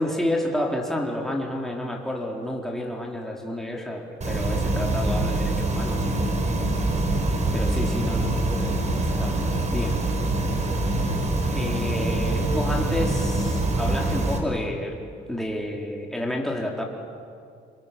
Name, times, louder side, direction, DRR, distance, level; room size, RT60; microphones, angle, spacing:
voice 1, 0.0-6.2 7.5-9.4 9.7-10.0 11.5-15.0 15.3-16.8, left 1 dB, ahead, -1 dB, 4.2 m, -30 dB
sound 1, 4.2-14.4, right 2 dB, 35° right, 5.5 m, -24 dB
29.0 x 27.5 x 7.1 m, 2.4 s
cardioid pair, 90°, 20 cm